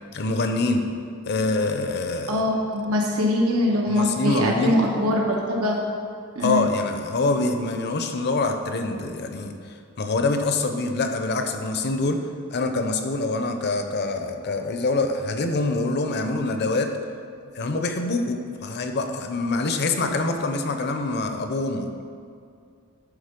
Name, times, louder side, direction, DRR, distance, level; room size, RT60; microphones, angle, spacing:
voice 1, 0.1-0.8 1.3-2.4 3.9-4.8 6.4-9.5 10.0-12.2 12.5-16.9 17.5-21.9, left 2 dB, 50° left, 5 dB, 0.7 m, -25 dB
voice 2, 2.3-5.8 6.3-6.7, left 1 dB, 90° right, -1 dB, 1.2 m, -22 dB
11.0 x 4.0 x 5.2 m, 2.3 s
head